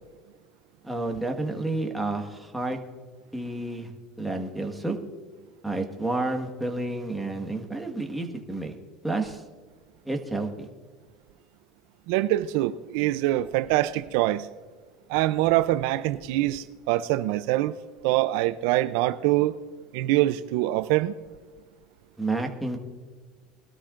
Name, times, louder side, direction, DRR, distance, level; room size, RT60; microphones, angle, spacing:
voice 1, 0.8-2.8 3.3-3.9 4.2-5.0 5.6-8.7 9.0-9.4 10.0-10.7 22.2-22.8, right 2 dB, 5° right, 1.5 m, -30 dB
voice 2, 12.1-14.5 15.1-17.7 18.0-19.6 19.9-21.1, right 16 dB, 70° right, 0.5 m, -24 dB
21.5 x 13.0 x 2.5 m
supercardioid pair, 135°, 0 cm